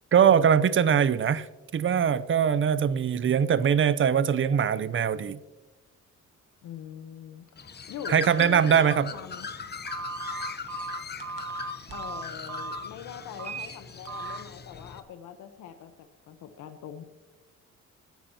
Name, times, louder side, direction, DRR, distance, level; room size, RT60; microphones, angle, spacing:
voice 1, 0.1-1.5 1.7-5.4 8.1-9.1, right 8 dB, 40° right, 15 dB, 0.7 m, -22 dB
voice 2, 6.6-7.4 7.9-9.5 11.9-17.0, left 8 dB, 80° left, 8 dB, 1.1 m, -42 dB
Bird, 7.6-15.0, left 5 dB, 35° left, 0.9 m, -40 dB
Telephone, 9.9-12.8 13.3-13.7 14.1-14.4, right 3 dB, 60° right, 1.5 m, -36 dB
24.0 x 10.0 x 2.9 m, 1.1 s
cardioid pair, 90°, 30 cm